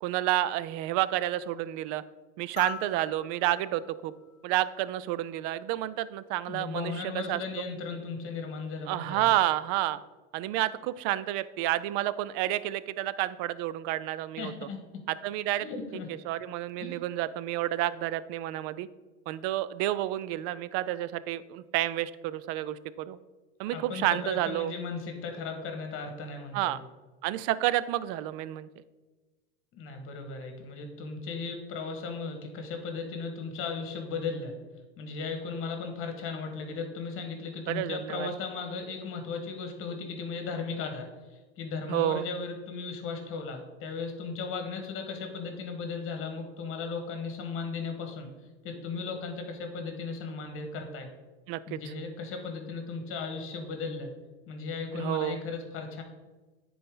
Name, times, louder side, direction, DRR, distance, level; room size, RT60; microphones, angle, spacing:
voice 1, 0.0-2.0 2.4-4.1 4.4-7.4 8.9-10.0 10.3-14.5 15.1-15.7 16.2-18.9 19.3-23.2 23.6-24.7 26.5-26.8 27.2-28.7 37.7-38.3 41.9-42.2 51.5-51.9 54.9-55.4, right 14 dB, 50° right, 16 dB, 0.4 m, -30 dB
sound 1, 2.6-5.1 6.7-6.8, left 13 dB, 60° left, 0.8 m, -44 dB
voice 2, 6.4-9.3 14.4-15.0 15.6-16.1 16.8-17.0 23.7-26.8 29.7-34.5 35.0-48.3 48.6-51.1 51.7-54.1 54.5-56.0, left 4 dB, 35° left, 5 dB, 1.6 m, -36 dB
9.7 x 4.2 x 3.8 m, 1.2 s
hypercardioid pair, 105°, 35 cm